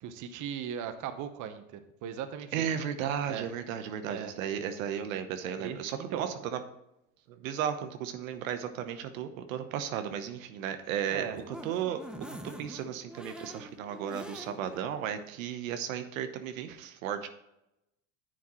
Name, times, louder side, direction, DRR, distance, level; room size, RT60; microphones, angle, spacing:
voice 1, 0.0-2.7 3.3-3.5 4.1-4.3 5.6-6.3 11.1-11.4, right 8 dB, 50° right, 9 dB, 1.1 m, -38 dB
voice 2, 2.5-6.6 7.3-17.3, right 9 dB, 80° right, 8 dB, 1.0 m, -35 dB
sound 1, 10.9-14.8 15.2-15.3 15.7-15.8, right 1 dB, ahead, 0.8 m, -46 dB
10.0 x 7.1 x 3.1 m, 0.86 s
supercardioid pair, 105°, 40 cm